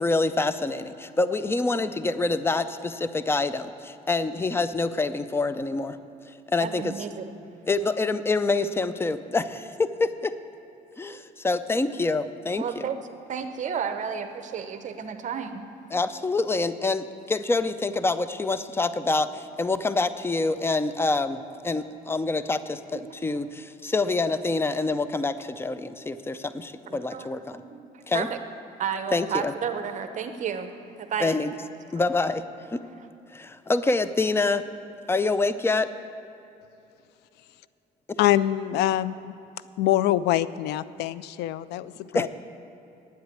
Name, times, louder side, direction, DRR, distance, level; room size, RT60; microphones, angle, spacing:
voice 1, 0.0-6.0 6.5-6.9 7.7-10.4 11.0-12.8 15.9-27.6 28.1-28.3 29.1-29.5 31.2-31.5 31.9-32.4 32.7-32.8 33.3-34.6 35.1-35.9 38.1-38.2 42.1-42.3, left 3 dB, 15° left, 13 dB, 0.5 m, -26 dB
voice 2, 6.6-7.4 12.6-13.0 13.3-15.7 23.3-23.4 26.9-28.4 28.8-30.7 31.0-31.4 32.0-32.1, right 7 dB, 45° right, 8 dB, 0.8 m, -32 dB
voice 3, 38.2-39.4 39.8-42.3, left 13 dB, 80° left, 17 dB, 0.4 m, -24 dB
9.1 x 8.1 x 9.4 m, 2.8 s
cardioid pair, 110°, 17 cm